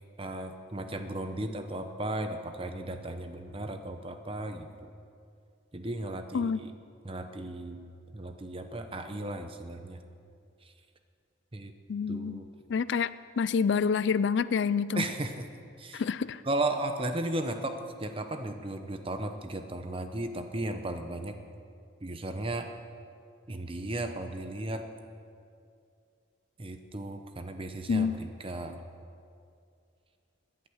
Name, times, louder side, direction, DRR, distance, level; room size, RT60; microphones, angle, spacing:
voice 1, 0.2-4.9 5.7-6.8 7.0-7.8 8.1-10.0 10.6-10.7 11.5-11.7 12.1-12.5 14.9-15.4 15.8-16.0 16.4-21.4 22.0-22.7 23.5-24.9 26.6-28.8, right 2 dB, 30° right, 7 dB, 0.9 m, -35 dB
voice 2, 11.9-12.4 12.7-15.0 15.9-16.4 27.9-28.2, left 6 dB, 65° left, 17 dB, 0.4 m, -28 dB
18.5 x 11.0 x 6.4 m, 2.4 s
head